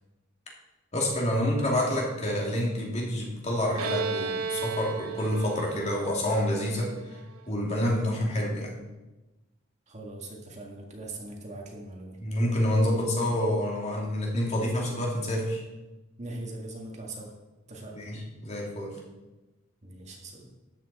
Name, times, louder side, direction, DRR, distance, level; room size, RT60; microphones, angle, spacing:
voice 1, 0.9-6.9 7.5-8.7 12.2-15.6 17.9-19.0, left 1 dB, 30° left, -2 dB, 2.5 m, -28 dB
Bowed string instrument, 3.8-7.3, right 5 dB, 85° right, 0.8 m, -34 dB
voice 2, 9.9-12.2 16.2-17.3 17.7-18.1 19.8-20.5, right 2 dB, 30° right, -1 dB, 1.9 m, -41 dB
13.0 x 9.0 x 4.2 m, 1.1 s
head